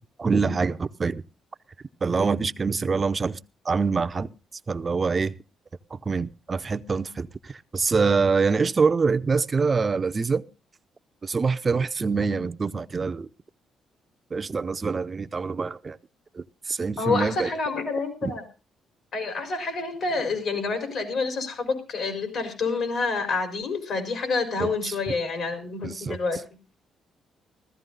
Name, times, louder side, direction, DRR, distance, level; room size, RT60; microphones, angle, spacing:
voice 1, 0.2-1.2 2.0-3.4 3.7-4.3 4.7-5.3 5.9-7.3 7.7-10.4 11.2-13.3 14.3-16.0 16.4-17.5 18.2-18.3 24.6-24.9 25.8-26.2, right 4 dB, 35° right, 0.6 m, -25 dB
voice 2, 17.0-18.4 19.1-26.4, left 4 dB, 65° left, 4.6 m, -28 dB
15.0 x 14.5 x 3.9 m
cardioid pair, 90°, 0 cm